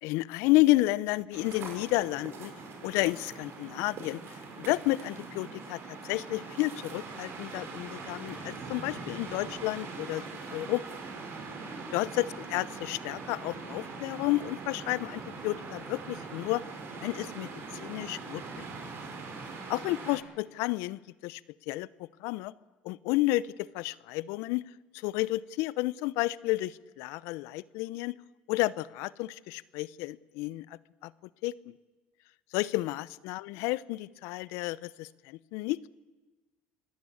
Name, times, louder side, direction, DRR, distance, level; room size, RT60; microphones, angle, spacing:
voice 1, 0.0-2.5 2.8-10.8 11.9-16.6 17.0-18.7 19.7-21.4 21.7-22.5 22.8-24.6 24.9-28.1 28.5-31.1 31.4-31.8 32.5-35.8, left 18 dB, 80° left, 19 dB, 0.7 m, -31 dB
sound 1, 1.3-20.2, right 4 dB, 60° right, 5.7 m, -42 dB
25.5 x 17.0 x 8.6 m, 1.2 s
supercardioid pair, 95°, 5 cm